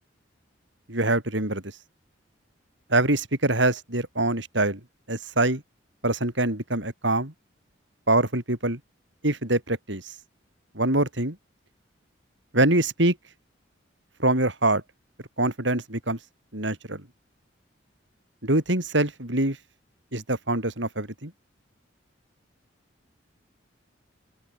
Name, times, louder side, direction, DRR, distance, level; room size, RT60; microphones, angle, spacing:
voice 1, 0.9-1.6 2.9-4.8 5.1-5.6 6.0-7.3 8.1-8.8 9.2-10.0 10.8-11.4 12.5-13.2 14.2-14.8 15.4-16.2 16.5-17.0 18.4-19.6 20.1-21.3, right 2 dB, 70° right, 5.9 m, -24 dB
open air
head